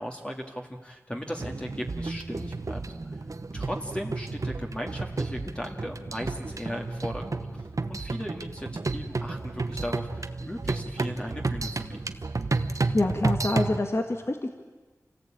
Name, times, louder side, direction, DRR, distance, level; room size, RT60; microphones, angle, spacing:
voice 1, 0.0-3.1 3.5-8.7 8.9-12.2, equal, 15° left, 1 dB, 2.2 m, -37 dB
sound 1, 1.4-13.8, right 3 dB, 60° right, 1.1 m, -32 dB
voice 2, 12.9-14.5, left 2 dB, 45° left, 4 dB, 1.6 m, -26 dB
27.5 x 18.0 x 9.0 m, 1.3 s
wide cardioid pair, 60°, 6 cm